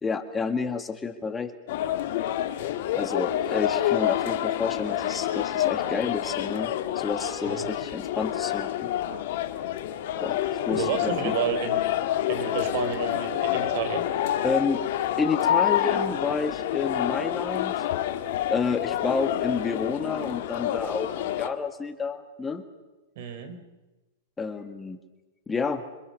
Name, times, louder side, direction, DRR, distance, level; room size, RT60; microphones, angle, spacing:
voice 1, 0.0-1.5 2.9-8.9 10.2-11.4 14.4-14.8 15.2-17.8 18.5-22.6 24.4-25.0 25.5-25.8, left 5 dB, 15° left, 7 dB, 2.0 m, -30 dB
sound 1, 1.7-21.5, left 12 dB, 60° left, 2.0 m, -28 dB
voice 2, 10.7-11.9 12.3-14.0 23.2-23.6, right 7 dB, 60° right, 10 dB, 4.0 m, -30 dB
27.0 x 26.0 x 6.8 m, 1.1 s
hypercardioid pair, 125°, 0 cm